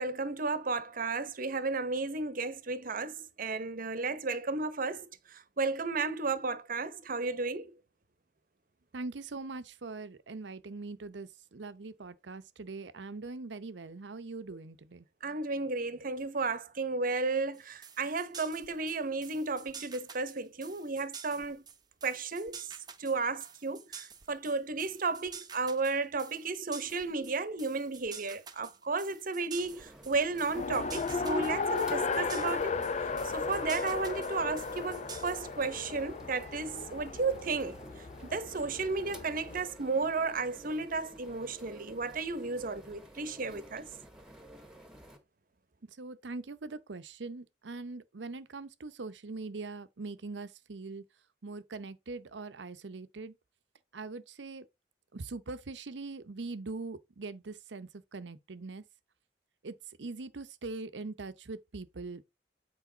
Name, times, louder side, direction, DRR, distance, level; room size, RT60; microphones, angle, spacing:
voice 1, 0.0-7.8 15.2-21.6 22.0-22.6 23.0-32.7 33.0-37.8 38.2-43.9, right 3 dB, 50° right, 0.9 m, -33 dB
voice 2, 8.9-15.1 45.8-51.0 51.4-53.3 53.9-54.6 55.1-58.8 59.6-62.2, right 3 dB, 85° right, 0.7 m, -42 dB
sound 1, 17.5-35.6, right 6 dB, 25° right, 0.9 m, -49 dB
sound 2, 29.5-45.2, right 1 dB, 5° right, 1.6 m, -52 dB
Race car auto racing, 30.5-39.6, left 4 dB, 40° left, 0.5 m, -35 dB
8.4 x 4.7 x 3.9 m
head